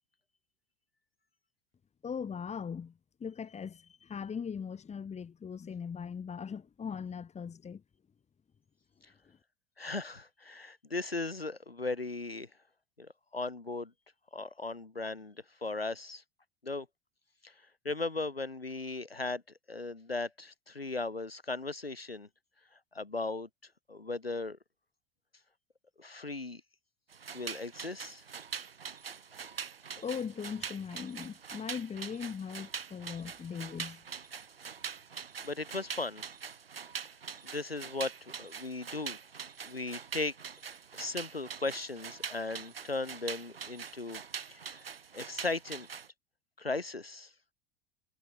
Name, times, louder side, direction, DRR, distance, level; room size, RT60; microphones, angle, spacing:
voice 1, 2.0-2.9 3.2-7.8 9.3-9.4 30.0-34.0, left 6 dB, 25° left, 3.9 m, -39 dB
voice 2, 9.8-12.5 13.0-13.9 14.3-16.2 16.6-16.9 17.4-17.5 17.8-19.4 19.7-22.3 22.9-23.5 23.9-24.6 26.0-26.6 27.3-28.2 35.4-36.2 37.4-39.2 39.7-40.3 40.9-44.2 44.5-44.8 45.1-45.9 46.6-47.3, left 3 dB, 85° left, 6.2 m, -37 dB
sound 1, 27.1-46.1, right 6 dB, 80° right, 3.2 m, -43 dB
figure-of-eight pair, 75°, 29 cm